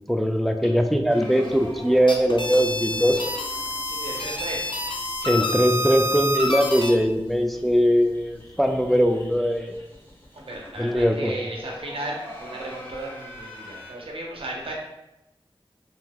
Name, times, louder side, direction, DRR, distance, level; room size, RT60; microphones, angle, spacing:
voice 1, 0.1-3.3 5.2-9.7 10.8-11.3, equal, ahead, 4 dB, 0.3 m, -21 dB
sound 1, 1.1-6.2 6.5-6.6 6.8-6.9 7.2-13.9, left 1 dB, 20° left, 1.0 m, -45 dB
sound 2, 1.9-6.9, left 1 dB, 55° left, 0.5 m, -28 dB
voice 2, 3.8-4.7 10.3-14.7, right 1 dB, 70° right, -1 dB, 0.7 m, -35 dB
2.8 x 2.2 x 3.4 m, 0.94 s
wide cardioid pair, 45°, 10 cm